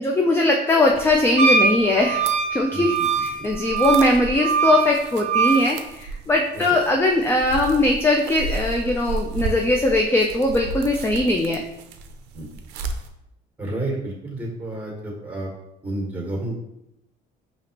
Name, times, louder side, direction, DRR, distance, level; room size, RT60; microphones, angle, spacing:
voice 1, 0.0-2.9 3.2-11.6, left 2 dB, 15° left, 1 dB, 0.4 m, -20 dB
sound 1, 0.8-13.1, right 3 dB, 90° right, 0.4 m, -34 dB
Wind instrument woodwind instrument, 1.4-5.7, right 5 dB, 45° right, 0.6 m, -22 dB
voice 2, 2.7-3.1 3.4-3.5 6.5-6.8 12.3-12.6 13.6-15.5 15.8-16.7, right 1 dB, 10° right, -2 dB, 1.4 m, -31 dB
4.9 x 2.9 x 2.9 m, 0.83 s
cardioid pair, 110°, 17 cm